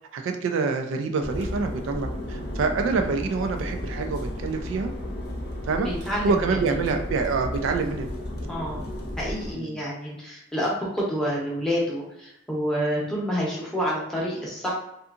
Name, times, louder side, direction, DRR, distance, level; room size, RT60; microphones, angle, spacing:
voice 1, 0.1-4.9 5.6-8.1 9.5-9.8, right 4 dB, 75° right, 5 dB, 0.3 m, -26 dB
sound 1, 1.2-9.5, left 1 dB, 50° left, 0.5 m, -33 dB
voice 2, 5.8-6.3 8.5-8.9 9.2-14.7, equal, 5° left, -5 dB, 0.7 m, -28 dB
2.6 x 2.4 x 2.4 m, 0.83 s
head